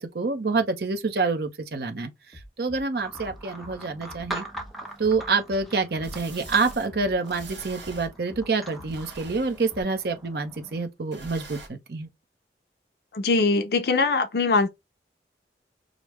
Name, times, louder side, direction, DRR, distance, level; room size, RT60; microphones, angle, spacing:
voice 1, 0.0-2.1 2.6-4.4 5.0-12.1, right 4 dB, 65° right, 0.6 m, -27 dB
Bass drum, 2.3-2.8 3.1-3.8 4.1-4.7 5.0-5.6 6.0-6.6 6.9-7.5 7.8-8.4 8.8-9.4 9.7-9.8, left 1 dB, 25° left, 1.1 m, -46 dB
sound 1, 2.9-10.8, right 1 dB, ahead, 0.6 m, -42 dB
sound 2, 4.9-5.0 6.0-6.9 7.2-8.1 8.7-9.8 11.1-11.7, right 3 dB, 85° right, 1.6 m, -44 dB
voice 2, 13.1-14.7, left 3 dB, 65° left, 0.5 m, -22 dB
5.0 x 2.1 x 3.1 m
head